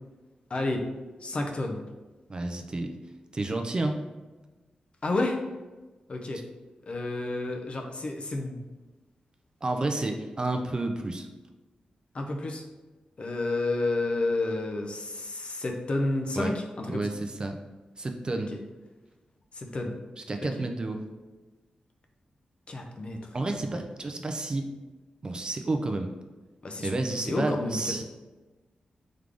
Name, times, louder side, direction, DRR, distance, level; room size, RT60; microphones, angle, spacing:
voice 1, 0.5-0.9 1.2-1.8 5.0-5.4 6.1-6.4 6.9-8.6 9.9-10.0 12.1-12.6 13.2-17.1 18.5-18.6 19.5-20.0 20.4-20.7 22.7-23.3 26.6-26.9 27.2-28.0, left 2 dB, 45° left, 3 dB, 0.5 m, -30 dB
voice 2, 2.3-3.0 3.3-4.0 9.6-11.3 16.4-16.5 16.9-17.6 18.0-18.5 20.3-21.1 23.3-24.7 25.2-26.1 26.8-28.0, right 2 dB, 30° right, 5 dB, 0.4 m, -30 dB
3.7 x 3.5 x 3.3 m, 1.2 s
wide cardioid pair, 110°, 3 cm